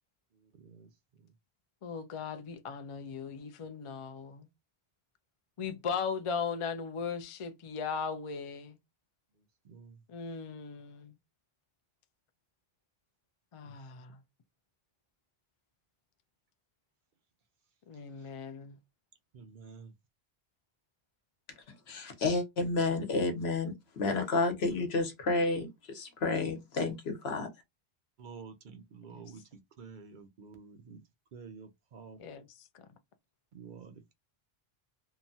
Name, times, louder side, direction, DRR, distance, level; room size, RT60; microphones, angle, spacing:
voice 1, 0.4-1.3 9.6-10.0 13.6-13.7 18.2-18.3 19.3-19.9 28.2-31.0 31.3-32.2 33.5-34.1, right 5 dB, 60° right, 0.6 m, -50 dB
voice 2, 1.8-4.5 5.6-8.8 10.1-11.1 13.5-14.2 17.9-18.8 29.1-29.3 32.2-32.9, left 6 dB, 55° left, 0.3 m, -38 dB
voice 3, 21.9-27.5, left 3 dB, 85° left, 1.1 m, -31 dB
2.9 x 2.2 x 2.6 m
omnidirectional pair, 1.1 m